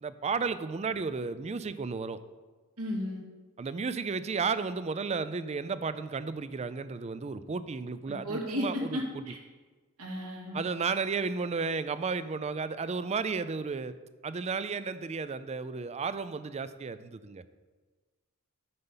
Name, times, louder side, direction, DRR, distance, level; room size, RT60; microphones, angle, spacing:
voice 1, 0.0-2.2 3.6-9.2 10.5-14.0 14.2-17.4, right 5 dB, 30° right, 14 dB, 0.4 m, -33 dB
voice 2, 2.8-3.2 8.1-9.4 10.0-10.6, left 1 dB, 80° right, -1 dB, 2.4 m, -34 dB
9.6 x 6.7 x 5.6 m, 1.4 s
head